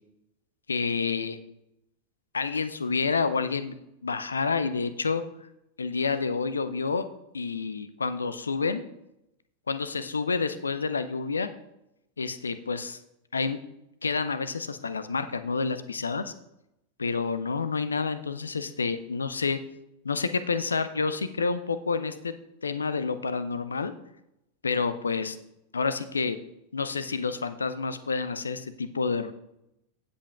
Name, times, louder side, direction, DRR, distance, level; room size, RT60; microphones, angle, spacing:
voice 1, 0.7-1.4 2.3-3.7 4.0-5.2 5.8-7.0 7.3-8.8 9.7-11.5 12.2-13.0 13.3-13.6 14.0-16.3 17.0-19.6 20.0-22.3 22.6-23.9 24.6-25.4 25.7-26.4 26.7-29.3, left 4 dB, 75° left, 13 dB, 0.5 m, -29 dB
16.5 x 7.8 x 2.4 m, 0.86 s
figure-of-eight pair, 90°, 0 cm